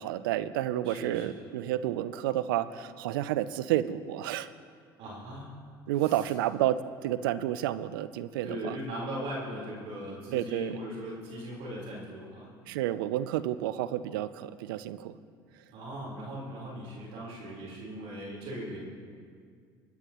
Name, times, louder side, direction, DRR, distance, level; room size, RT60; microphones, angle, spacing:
voice 1, 0.0-4.5 5.9-8.8 10.3-10.8 12.7-15.2, right 13 dB, 80° right, 14 dB, 0.5 m, -30 dB
voice 2, 0.8-1.2 5.0-5.5 6.0-6.3 8.4-12.5 15.7-18.8, right 1 dB, 60° right, -5 dB, 3.9 m, -39 dB
25.0 x 9.7 x 3.0 m, 2.1 s
hypercardioid pair, 70°, 11 cm